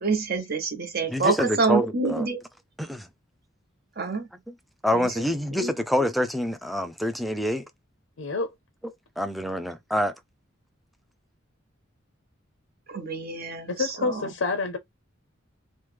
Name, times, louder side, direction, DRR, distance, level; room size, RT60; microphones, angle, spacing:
voice 1, 0.0-2.4 4.0-4.2 4.9-5.1 5.5-5.8 12.9-13.7 14.0-14.1, right 4 dB, 50° right, 0.9 m, -26 dB
voice 2, 1.1-2.3 2.8-3.1 4.5-4.6 4.8-7.6 9.2-10.1, equal, ahead, 0.3 m, -26 dB
voice 3, 8.2-8.5 13.7-14.8, left 3 dB, 80° left, 0.6 m, -28 dB
3.1 x 2.1 x 3.3 m
head